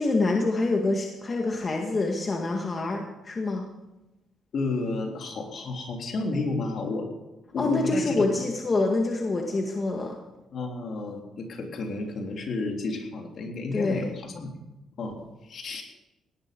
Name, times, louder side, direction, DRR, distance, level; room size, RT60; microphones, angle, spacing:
voice 1, 0.0-3.7 7.6-10.2 13.7-14.1, left 2 dB, 35° left, 1 dB, 1.8 m, -26 dB
voice 2, 4.5-7.1 7.5-8.3 10.5-14.5 15.0-15.2 15.4-15.8, left 3 dB, 60° left, 2 dB, 3.3 m, -31 dB
17.5 x 11.5 x 5.3 m, 0.99 s
cardioid pair, 90°, 0 cm